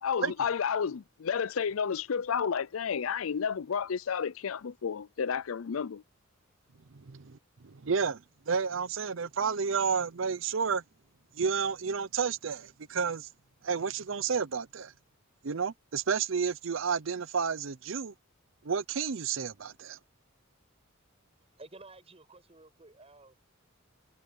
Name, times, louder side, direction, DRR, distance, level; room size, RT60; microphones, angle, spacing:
voice 1, 0.0-6.0, left 6 dB, 80° left, 0.5 m, -31 dB
voice 2, 7.1-7.4 7.6-8.2 8.5-10.8 11.4-13.3 13.6-14.9 15.4-18.1 18.6-20.0, right 6 dB, 65° right, 0.6 m, -31 dB
voice 3, 21.4-23.4, right 2 dB, 30° right, 5.9 m, -53 dB
head